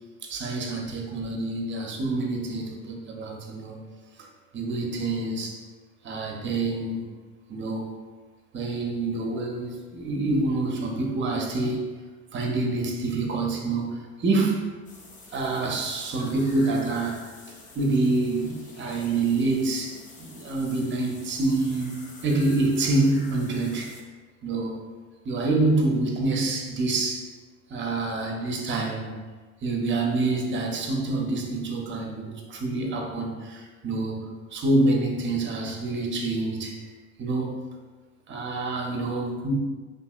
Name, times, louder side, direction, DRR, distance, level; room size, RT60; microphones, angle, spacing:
voice 1, 0.2-3.8 4.5-5.6 6.0-7.1 7.5-7.9 8.5-11.9 12.3-14.7 15.3-17.3 17.7-22.0 22.2-23.9 24.4-24.8 25.2-27.3 27.7-29.1 29.6-34.3 34.5-36.8 37.2-37.6 38.3-39.5, right 2 dB, 30° right, 1 dB, 0.6 m, -27 dB
sound 1, 14.8-24.0, left 2 dB, 20° left, 0.4 m, -48 dB
2.7 x 2.5 x 2.3 m, 1.3 s
hypercardioid pair, 75°, 42 cm